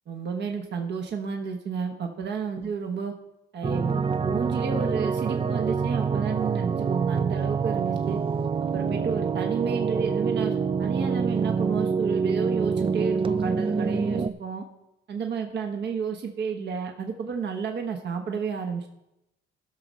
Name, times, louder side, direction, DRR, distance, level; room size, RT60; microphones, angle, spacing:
voice 1, 0.1-3.1 3.5-8.2 8.6-14.7 15.1-18.9, right 6 dB, 60° right, 3 dB, 1.2 m, -31 dB
sound 1, 3.6-14.3, right 5 dB, 25° right, 0.5 m, -26 dB
15.5 x 6.3 x 4.1 m, 0.88 s
cardioid pair, 90°, 20 cm